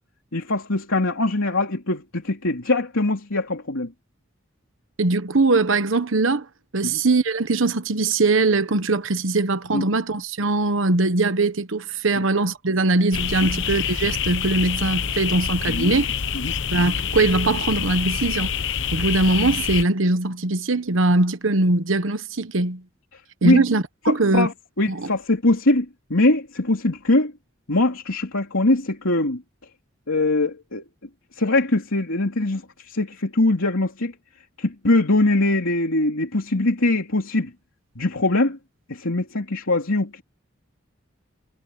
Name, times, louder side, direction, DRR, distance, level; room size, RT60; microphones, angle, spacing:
voice 1, 0.3-3.9 6.8-7.0 9.7-9.8 13.4-13.6 15.7-15.9 16.3-16.5 23.4-23.6 24.1-27.3 27.7-29.4 30.1-30.8 31.3-34.1 34.6-37.5 37.9-38.6 38.9-40.2, left 2 dB, 90° left, 3.3 m, -22 dB
voice 2, 5.0-6.5 6.7-16.1 16.7-18.6 18.9-22.8 23.4-24.5 24.9-25.1, right 2 dB, 75° right, 1.1 m, -21 dB
sound 1, 13.1-19.8, left 7 dB, 65° left, 0.9 m, -26 dB
head